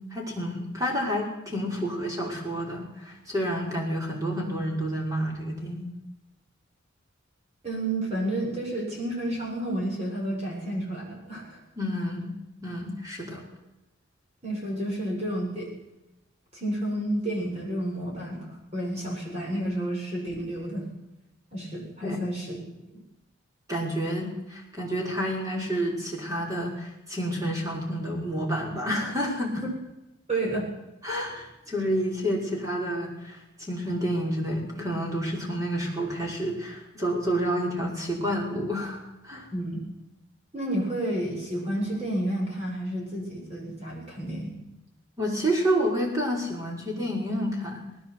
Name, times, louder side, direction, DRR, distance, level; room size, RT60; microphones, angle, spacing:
voice 1, 0.1-6.0 11.8-12.4 12.6-13.4 22.0-22.2 23.7-29.6 31.0-39.5 45.2-47.9, equal, 15° right, -1 dB, 5.5 m, -29 dB
voice 2, 7.6-11.6 14.4-15.7 16.5-20.9 21.5-22.5 22.9-23.0 29.6-29.7 30.3-30.7 39.5-39.8 40.5-44.6, right 1 dB, 30° right, -2 dB, 7.7 m, -30 dB
19.5 x 17.0 x 8.3 m, 0.94 s
head